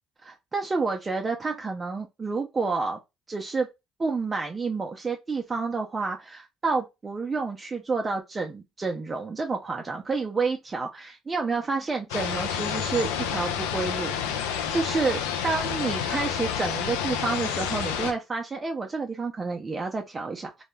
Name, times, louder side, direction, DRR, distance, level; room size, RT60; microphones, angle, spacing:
voice 1, 0.2-3.0 3.3-3.7 4.0-20.6, right 4 dB, 30° right, 0.4 m, -29 dB
sound 1, 12.1-18.1, left 8 dB, 90° left, 0.4 m, -29 dB
2.2 x 2.0 x 3.0 m
supercardioid pair, 75°, 0 cm